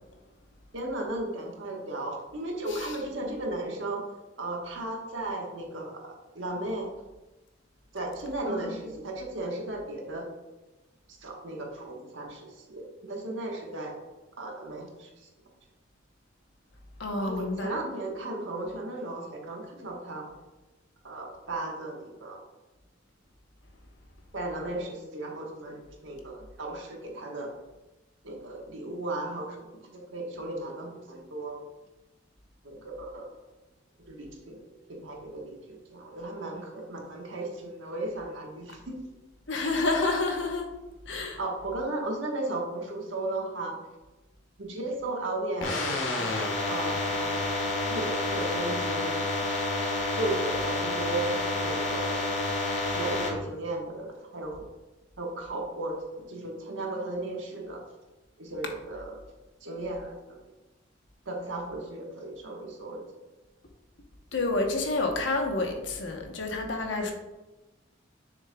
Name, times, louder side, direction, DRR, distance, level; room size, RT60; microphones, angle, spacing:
voice 1, 0.7-4.0 4.4-6.9 7.9-10.3 11.1-14.0 14.4-15.3 17.2-20.3 21.0-22.4 24.3-27.5 28.2-31.6 32.6-33.4 34.0-34.6 34.9-39.0 41.4-43.8 44.6-47.5 47.9-49.2 50.1-52.3 52.9-54.7 55.2-57.8 58.4-59.2 59.6-60.4 61.2-63.0 66.9-67.1, right 2 dB, 80° right, 0 dB, 1.3 m, -35 dB
voice 2, 17.0-17.8 39.5-40.7 41.1-41.4 64.3-67.1, left 2 dB, 70° left, 3 dB, 1.0 m, -29 dB
sound 1, 45.6-53.3, left 2 dB, 85° left, 1.3 m, -29 dB
7.1 x 6.5 x 2.3 m, 1.1 s
head